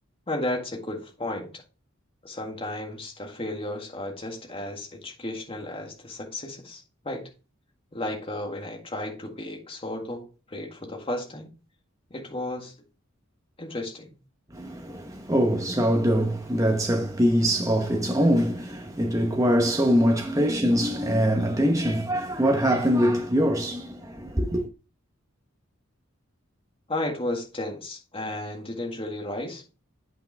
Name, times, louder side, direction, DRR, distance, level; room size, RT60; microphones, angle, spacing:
voice 1, 0.3-1.5 2.2-7.2 7.9-11.5 12.1-12.7 13.6-14.2 26.9-29.6, left 1 dB, 25° left, 1.8 m, -33 dB
voice 2, 14.5-24.7, equal, 15° right, 0.9 m, -23 dB
8.5 x 5.7 x 3.4 m
head